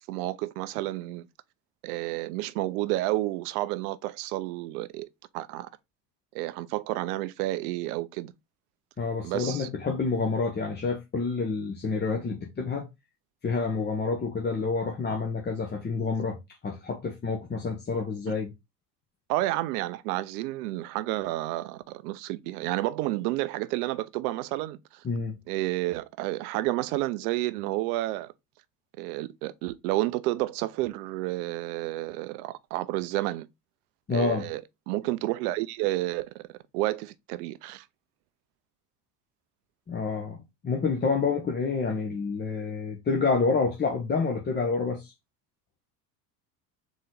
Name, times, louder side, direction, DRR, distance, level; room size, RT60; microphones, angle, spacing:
voice 1, 0.1-1.3 1.8-5.1 5.3-5.7 6.3-8.3 9.2-9.7 18.3-18.4 19.3-25.0 25.5-28.3 29.0-33.5 34.1-34.6 34.9-37.8, right 17 dB, 65° right, 0.6 m, -30 dB
voice 2, 9.0-12.9 13.4-16.4 16.6-18.5 25.0-25.3 34.1-34.5 39.9-40.4 40.6-45.1, left 4 dB, 20° left, 0.9 m, -28 dB
4.0 x 3.2 x 3.8 m
hypercardioid pair, 75°, 49 cm